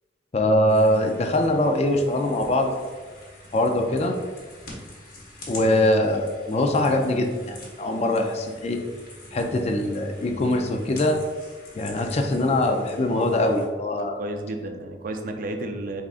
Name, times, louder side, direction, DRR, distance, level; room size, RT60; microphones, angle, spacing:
voice 1, 0.3-2.7 3.5-4.2 5.5-8.8 9.3-11.2 11.7-14.2, left 1 dB, 35° left, 4 dB, 0.4 m, -22 dB
sound 1, 0.7-13.7, left 1 dB, 55° left, 1.0 m, -45 dB
voice 2, 14.0-16.0, right 1 dB, 50° right, 5 dB, 0.4 m, -32 dB
4.7 x 3.6 x 2.4 m, 1.4 s
head